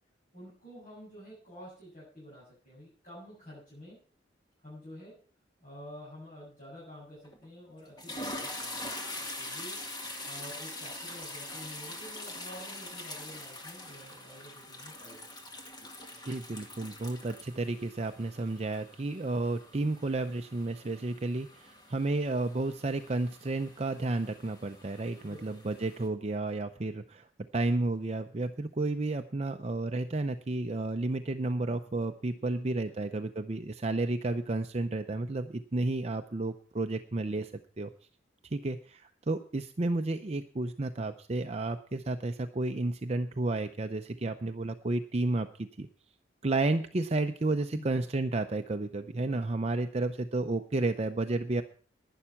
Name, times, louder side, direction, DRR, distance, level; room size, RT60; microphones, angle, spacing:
voice 1, 0.3-4.0 4.6-5.2 5.6-9.8 10.2-15.3 15.8-15.9 25.3-25.6 32.4-32.5 32.8-32.9 38.6-38.7 47.7-47.9, equal, 45° left, -7 dB, 7.7 m, -49 dB
sound 1, 7.2-7.5 7.8-26.1, left 1 dB, 20° left, 1.9 m, -44 dB
voice 2, 16.2-27.3 27.5-37.5 37.8-37.9 38.5-45.5 45.8-45.9 46.4-51.6, right 2 dB, 35° right, 7 dB, 0.6 m, -32 dB
11.5 x 10.0 x 5.9 m, 0.43 s
head